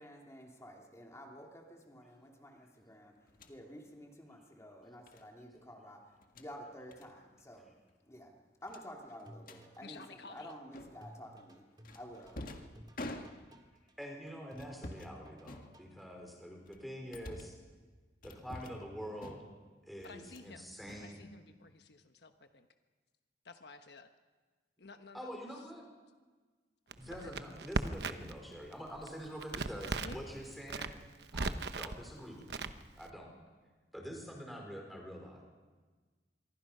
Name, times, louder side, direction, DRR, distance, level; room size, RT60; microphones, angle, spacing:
voice 1, 0.0-7.7 8.0-8.3 8.6-11.6 11.9-12.4, equal, 15° left, 0 dB, 2.7 m, -51 dB
sound 1, 3.3-3.6 5.1-5.3 6.1-6.5 6.9-7.1 7.4-7.6 7.9-8.0 8.7-9.6 10.7-11.2 11.8-13.7 14.5-15.1 15.4-16.2 16.7-17.6 18.2-18.9 19.2-19.7 20.0-20.5 20.8-21.7, left 1 dB, 55° left, 1.9 m, -48 dB
sound 2, 9.3-16.1, equal, 25° right, 2.3 m, -58 dB
voice 2, 9.8-10.5 20.0-20.7 21.0-22.7 23.4-24.1 24.8-25.7 27.0-27.3 30.0-30.2, left 3 dB, 70° left, 7 dB, 1.2 m, -53 dB
voice 3, 14.0-17.5 18.2-19.5 19.8-21.2 25.1-25.8 27.0-31.0 31.3-32.7 33.0-33.3 33.9-35.4, equal, ahead, 0 dB, 4.7 m, -46 dB
Crackle, 26.9-28.4 28.7-30.2 30.6-32.0 32.5-33.1, right 3 dB, 70° right, 1.0 m, -37 dB
26.0 x 23.5 x 5.7 m, 1.4 s
head